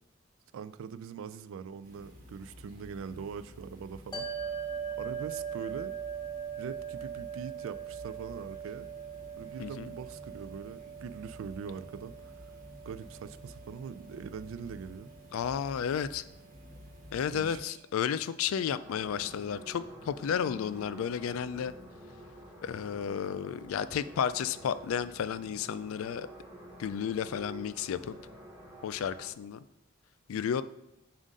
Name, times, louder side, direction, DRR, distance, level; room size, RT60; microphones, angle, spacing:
voice 1, 0.5-4.6 5.0-5.9 6.6-8.9 9.4-12.4 12.9-15.1 17.3-17.6, right 6 dB, 65° right, 14 dB, 0.3 m, -42 dB
sound 1, 1.8-17.6, left 1 dB, 40° right, 1.1 m, -52 dB
sound 2, 4.1-16.6, right 7 dB, 20° left, 0.7 m, -41 dB
voice 2, 15.3-16.2 17.1-21.7 22.6-26.3 26.8-28.2 28.8-29.6 30.3-30.6, left 8 dB, 75° left, 14 dB, 0.3 m, -32 dB
sound 3, 18.8-29.3, right 1 dB, 10° right, 1.4 m, -49 dB
7.2 x 2.5 x 5.2 m, 0.90 s
head